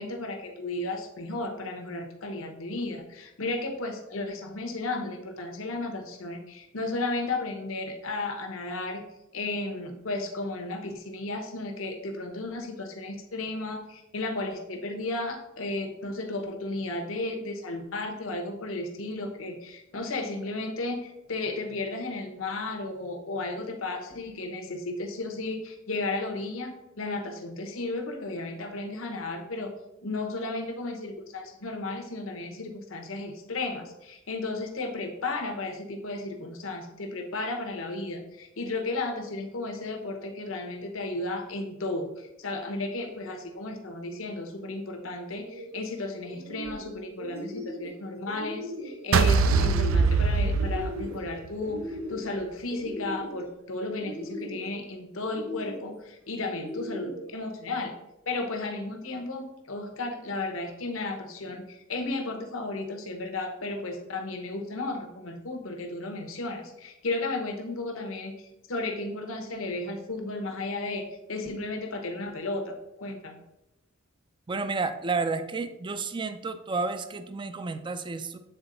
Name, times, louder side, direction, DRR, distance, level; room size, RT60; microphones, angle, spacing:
voice 1, 0.0-9.0 9.3-29.7 30.0-57.9 58.3-73.4, left 2 dB, 85° left, 4 dB, 1.0 m, -34 dB
sound 1, 45.3-45.8 46.2-46.9 47.2-47.9 48.2-49.0 49.4-50.1 50.4-51.2 51.6-52.3 52.7-53.4 53.9-54.7 55.2-55.9 56.4-57.2, equal, 55° right, 1.3 m, -38 dB
sound 2, 49.1-51.5, right 4 dB, 85° right, 0.4 m, -22 dB
voice 2, 74.5-78.4, right 4 dB, 25° right, 10 dB, 0.4 m, -31 dB
7.9 x 3.8 x 3.9 m, 0.90 s
head